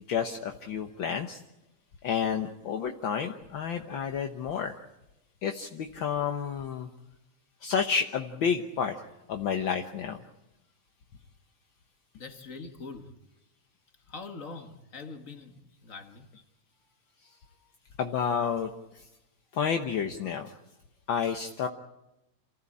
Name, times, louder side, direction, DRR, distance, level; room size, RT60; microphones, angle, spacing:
voice 1, 0.1-1.4 2.0-4.8 5.4-6.9 7.6-10.2 18.0-19.0 19.5-20.5 21.1-21.7, left 7 dB, 60° left, 1.3 m, -30 dB
voice 2, 12.2-13.1 14.1-16.3, left 4 dB, 35° left, 1.4 m, -43 dB
28.0 x 15.5 x 8.6 m
omnidirectional pair, 3.5 m